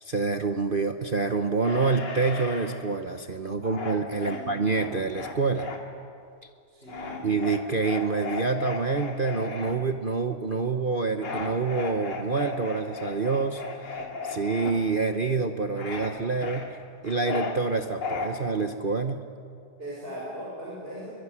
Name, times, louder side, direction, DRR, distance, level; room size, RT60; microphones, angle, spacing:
voice 1, 0.0-5.7 7.2-14.0 14.2-16.6 17.0-19.2, right 4 dB, 50° right, 6 dB, 0.6 m, -27 dB
sound 1, 1.6-2.8 3.7-5.8 6.9-9.8 11.2-14.7 15.8-16.1 16.4-17.6 18.0-18.3, left 4 dB, 75° left, 3.5 m, -35 dB
voice 2, 4.2-4.5 6.7-7.3 19.8-21.1, equal, 25° right, -6 dB, 6.5 m, -39 dB
23.5 x 23.0 x 10.0 m, 2.3 s
omnidirectional pair, 2.4 m